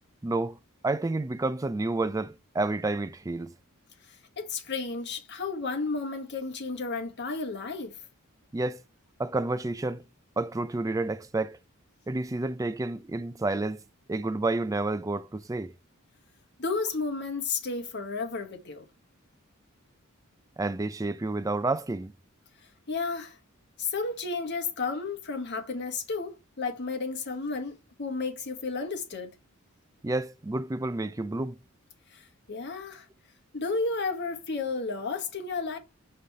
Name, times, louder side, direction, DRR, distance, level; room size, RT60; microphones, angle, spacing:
voice 1, 0.2-0.6 0.8-3.5 8.5-8.8 9.2-10.0 10.4-11.6 12.1-13.8 14.1-15.7 20.6-22.1 30.0-31.6, right 2 dB, 15° right, 0.4 m, -30 dB
voice 2, 4.4-8.0 16.6-18.9 22.9-23.4 23.8-29.3 32.1-33.1 33.5-35.8, left 4 dB, 50° left, 1.3 m, -32 dB
5.3 x 3.4 x 5.6 m
head